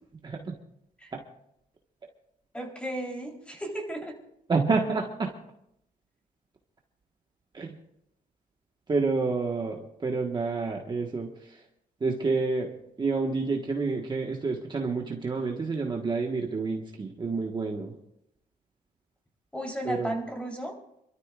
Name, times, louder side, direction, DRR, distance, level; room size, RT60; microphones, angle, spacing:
voice 1, 0.2-0.5 4.5-5.3 7.5-7.7 8.9-11.6 12.0-12.7 13.0-17.9 19.8-20.1, right 4 dB, 30° right, 1 dB, 1.4 m, -29 dB
voice 2, 2.5-4.2 19.5-20.8, right 1 dB, 5° left, 0 dB, 3.7 m, -34 dB
29.0 x 13.0 x 2.5 m, 0.77 s
cardioid pair, 120°, 16 cm